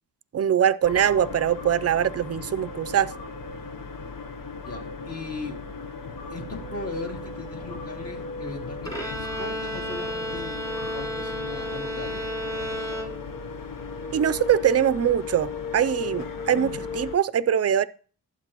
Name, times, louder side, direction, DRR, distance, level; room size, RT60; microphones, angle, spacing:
voice 1, 0.3-3.1 14.1-17.9, right 9 dB, 40° right, 0.5 m, -23 dB
sound 1, 0.8-17.2, left 4 dB, 55° left, 0.9 m, -36 dB
sound 2, 1.6-1.8 3.1-3.3 4.6-4.8 6.2-6.4 7.7-7.9 9.2-9.4 10.8-11.0, left 3 dB, 85° left, 6.1 m, -44 dB
voice 2, 4.7-5.5 6.3-10.6 10.9-12.2 16.2-16.4, left 3 dB, 40° left, 2.2 m, -38 dB
Bowed string instrument, 8.8-13.6, equal, 10° left, 2.4 m, -33 dB
20.0 x 8.0 x 3.0 m
wide cardioid pair, 160°, 39 cm